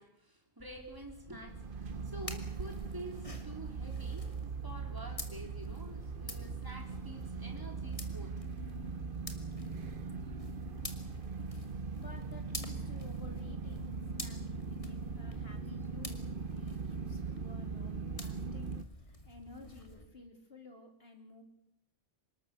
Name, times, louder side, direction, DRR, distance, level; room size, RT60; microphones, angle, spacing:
voice 1, 0.0-8.4 9.3-9.7, right 1 dB, 15° right, 2 dB, 4.1 m, -49 dB
sound 1, 0.6-20.0, left 2 dB, 25° left, 2.6 m, -50 dB
sound 2, 1.5-18.8, right 5 dB, 40° right, 1.1 m, -40 dB
voice 2, 12.0-18.7 19.0-21.4, left 2 dB, 45° left, 3 dB, 4.0 m, -53 dB
25.0 x 21.0 x 6.9 m, 0.75 s
omnidirectional pair, 1.5 m